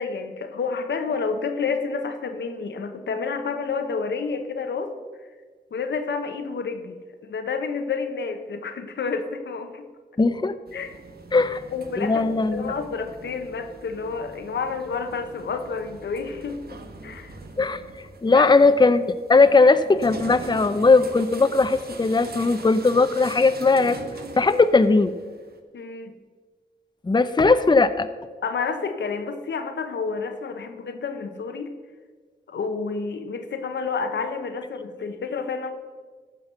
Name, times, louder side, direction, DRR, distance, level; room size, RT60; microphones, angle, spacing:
voice 1, 0.0-4.9 5.7-9.8 10.7-10.9 11.7-16.6 17.0-17.4 18.3-18.5 25.7-26.1 28.4-31.7 32.5-35.7, left 5 dB, 90° left, 6 dB, 1.0 m, -29 dB
voice 2, 10.2-10.5 11.3-11.6 12.0-12.7 17.6-17.8 18.2-24.0 24.4-25.2 27.0-28.1, left 3 dB, 25° left, 11 dB, 0.6 m, -18 dB
sound 1, 10.7-25.6, right 3 dB, 60° right, 1.4 m, -42 dB
14.0 x 5.4 x 6.7 m, 1.5 s
cardioid pair, 50°, 18 cm